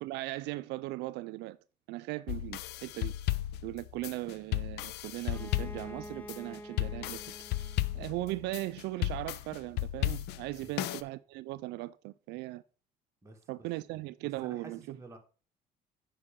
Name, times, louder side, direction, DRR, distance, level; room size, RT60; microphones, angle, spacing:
voice 1, 0.0-1.6 1.9-3.1 3.6-7.2 7.6-7.7 7.9-12.6 13.5-15.0, right 19 dB, 90° right, 0.4 m, -38 dB
sound 1, 2.3-11.0, left 15 dB, 80° left, 0.5 m, -35 dB
Bowed string instrument, 5.3-9.0, equal, 10° left, 0.6 m, -48 dB
voice 2, 10.6-10.9 13.2-13.7 14.4-15.2, right 3 dB, 15° right, 1.7 m, -51 dB
9.9 x 4.9 x 3.6 m
cardioid pair, 110°, 17 cm